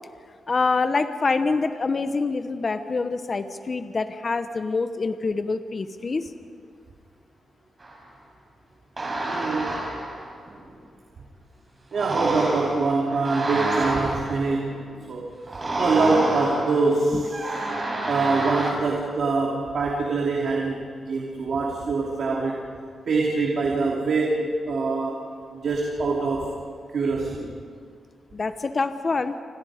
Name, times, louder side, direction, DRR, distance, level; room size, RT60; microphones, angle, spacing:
voice 1, 0.5-6.3 17.1-17.2 28.3-29.4, left 4 dB, 30° left, 9 dB, 0.9 m, -25 dB
sound 1, 7.8-7.9 9.0-10.6 11.9-14.9 15.5-18.7, right 1 dB, 25° right, 5.0 m, -28 dB
voice 2, 9.2-9.8 11.9-17.4 18.1-22.6 23.1-25.2 25.5-26.6 26.9-27.5, right 3 dB, 60° right, -2 dB, 2.9 m, -24 dB
29.5 x 25.5 x 5.1 m, 2.1 s
wide cardioid pair, 150°, 0 cm